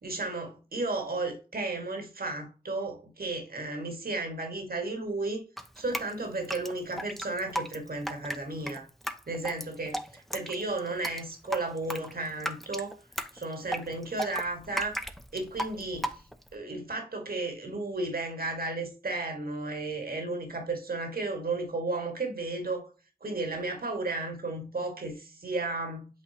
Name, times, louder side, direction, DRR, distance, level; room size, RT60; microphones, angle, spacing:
voice 1, 0.0-5.4 5.8-8.9 9.3-10.0 10.3-13.0 13.3-15.0 15.3-22.9 23.2-26.1, right 2 dB, 65° right, 2.0 m, -33 dB
Drip, 5.6-16.5, equal, ahead, 0.7 m, -36 dB
8.4 x 4.1 x 3.0 m
wide cardioid pair, 75°, 16 cm